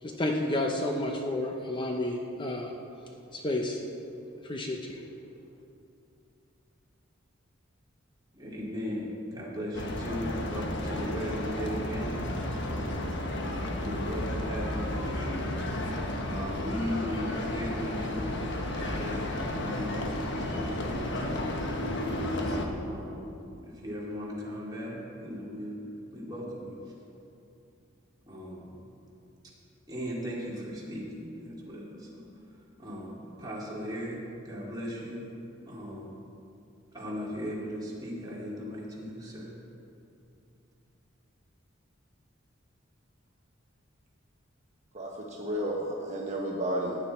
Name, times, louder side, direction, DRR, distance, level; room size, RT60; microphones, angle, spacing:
voice 1, 0.0-2.7 3.3-3.8 4.4-5.0, left 1 dB, 25° left, 1 dB, 0.7 m, -31 dB
voice 2, 8.3-13.1 13.8-15.4 16.2-21.6 22.4-25.8 26.1-26.8 28.3-28.8 29.4-29.5 29.9-32.3 32.8-35.3 35.6-36.2 36.9-39.5, equal, 20° right, -6 dB, 2.7 m, -37 dB
sound 1, 9.7-22.7, left 1 dB, 60° left, 1.2 m, -32 dB
voice 3, 44.9-47.0, right 1 dB, 35° right, -3 dB, 1.1 m, -32 dB
15.0 x 9.9 x 4.4 m, 2.7 s
head